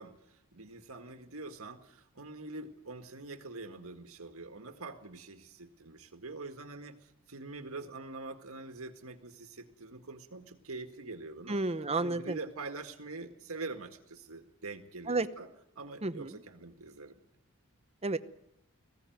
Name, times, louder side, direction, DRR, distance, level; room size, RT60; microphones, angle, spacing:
voice 1, 0.0-11.6 12.0-15.5 15.8-17.2, right 3 dB, 70° right, 6 dB, 1.8 m, -45 dB
voice 2, 11.5-12.4 15.1-15.3 16.0-16.3 18.0-18.2, right 3 dB, 30° right, 11 dB, 0.9 m, -31 dB
19.5 x 16.0 x 9.3 m, 0.82 s
head